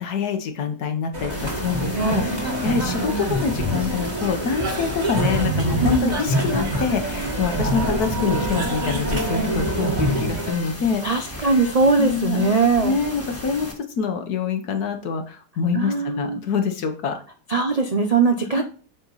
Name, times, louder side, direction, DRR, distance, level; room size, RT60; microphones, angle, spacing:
voice 1, 0.0-11.0 11.4-11.5 12.0-12.5 12.8-17.2 18.6-18.7, left 6 dB, 65° left, 7 dB, 1.5 m, -26 dB
sound 1, 1.1-10.5, right 1 dB, 25° right, 1.8 m, -25 dB
sound 2, 1.3-13.7, equal, 10° left, 1.3 m, -36 dB
Cough, 4.4-6.0 6.4-7.9 8.2-10.1, right 4 dB, 80° right, 2.6 m, -37 dB
voice 2, 5.8-6.2 11.0-12.9 15.7-16.4 17.5-18.6, right 4 dB, 60° right, 4 dB, 0.4 m, -20 dB
8.2 x 4.5 x 4.0 m, 0.39 s
omnidirectional pair, 1.8 m